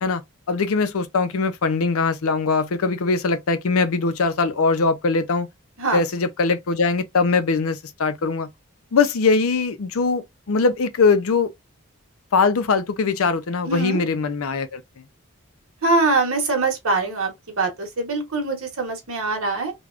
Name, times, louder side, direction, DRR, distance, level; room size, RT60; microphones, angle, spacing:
voice 1, 0.5-5.5 5.9-8.5 8.9-11.5 12.3-14.8, left 4 dB, 75° left, 0.5 m, -21 dB
voice 2, 13.7-14.0 15.8-19.7, right 3 dB, 70° right, 1.1 m, -23 dB
3.3 x 2.2 x 2.4 m
head